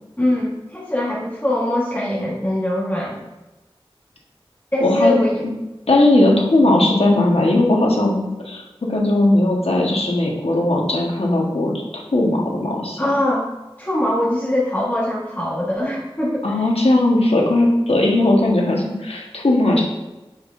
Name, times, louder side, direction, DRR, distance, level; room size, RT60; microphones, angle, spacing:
voice 1, 0.2-3.2 4.7-5.4 13.0-13.5 13.8-16.4, left 1 dB, 15° left, -6 dB, 1.3 m, -22 dB
voice 2, 4.8-5.1 5.9-8.2 8.4-11.7 12.1-13.0 16.4-19.8, left 1 dB, 80° left, -1 dB, 1.2 m, -17 dB
6.3 x 5.8 x 2.6 m, 1.0 s
wide cardioid pair, 40°, 10 cm